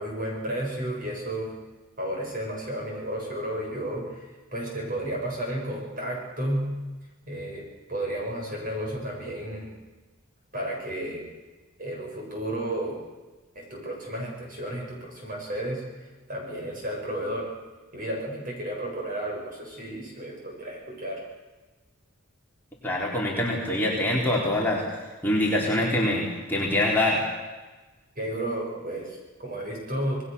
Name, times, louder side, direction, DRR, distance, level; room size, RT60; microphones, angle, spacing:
voice 1, 0.0-1.5 2.0-6.7 7.3-9.7 10.5-11.2 11.8-13.0 13.5-17.5 17.9-21.2 28.2-30.2, right 1 dB, 40° right, -1 dB, 7.8 m, -32 dB
voice 2, 22.8-24.8 25.2-27.3, left 1 dB, 10° left, -4 dB, 3.7 m, -24 dB
28.0 x 20.0 x 7.0 m, 1.2 s
head